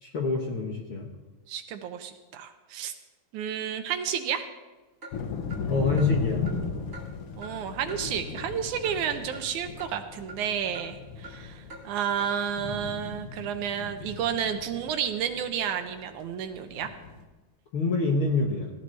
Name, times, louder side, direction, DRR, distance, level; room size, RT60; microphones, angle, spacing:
voice 1, 0.0-1.1 5.6-6.4 17.7-18.7, left 3 dB, 70° left, 0 dB, 1.3 m, -26 dB
voice 2, 1.5-2.9 3.3-4.4 7.4-16.9, right 8 dB, 75° right, 7 dB, 1.8 m, -31 dB
Clock, 5.0-5.1 5.5-5.6 6.0-6.1 6.5-6.6 6.9-7.1 7.4-7.5 7.9-8.0 8.4-8.5 8.8-9.0 9.3-9.4 9.8-9.9 10.3-10.4 10.7-10.9 11.2-11.4 11.7-11.8 12.2-12.3, right 2 dB, 25° right, 2.0 m, -43 dB
sound 1, 5.1-17.2, left 5 dB, 85° left, 1.2 m, -36 dB
18.0 x 15.0 x 3.3 m, 1.2 s
omnidirectional pair, 4.2 m